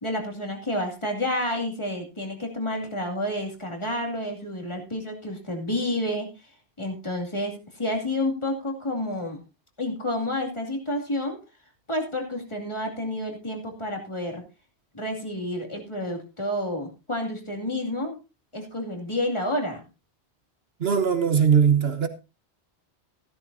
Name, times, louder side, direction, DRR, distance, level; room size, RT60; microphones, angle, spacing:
voice 1, 0.0-6.3 6.8-9.4 9.8-11.4 11.9-14.4 14.9-18.2 18.5-19.8, left 1 dB, 25° left, 2.6 m, -29 dB
voice 2, 20.8-22.1, right 7 dB, 65° right, 1.3 m, -20 dB
14.5 x 12.5 x 2.7 m
omnidirectional pair, 1.1 m